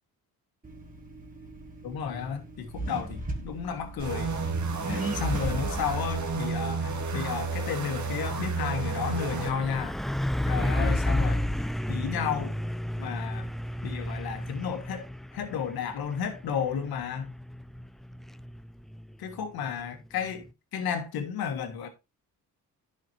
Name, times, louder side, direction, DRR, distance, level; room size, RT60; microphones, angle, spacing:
Accelerating revving vroom, 0.6-8.0, right 2 dB, 25° right, 2.2 m, -37 dB
voice 1, 1.8-4.4 4.9-10.0 10.4-11.4 11.9-12.5 13.0-13.5 13.8-17.3 19.2-20.5 20.7-21.9, left 7 dB, 90° left, 1.9 m, -32 dB
sound 1, 4.0-9.5, right 4 dB, 55° right, 1.8 m, -32 dB
Truck, 6.3-20.5, left 1 dB, ahead, 0.4 m, -33 dB
11.0 x 6.4 x 2.8 m
cardioid pair, 85°, 36 cm